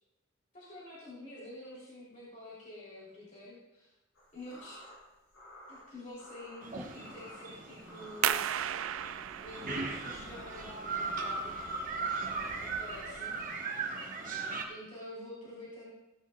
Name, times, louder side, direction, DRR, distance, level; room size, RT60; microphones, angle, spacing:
voice 1, 0.5-3.9 4.3-4.8 5.7-8.4 9.4-11.6 12.6-13.4 14.7-15.9, left 1 dB, 35° left, -8 dB, 3.2 m, -47 dB
sound 1, 4.1-12.7, equal, 90° left, 3.9 m, -53 dB
sound 2, 6.6-14.6, right 4 dB, 40° right, 1.3 m, -38 dB
sound 3, 8.2-13.6, right 10 dB, 80° right, 0.4 m, -37 dB
16.5 x 9.9 x 2.3 m, 0.95 s
head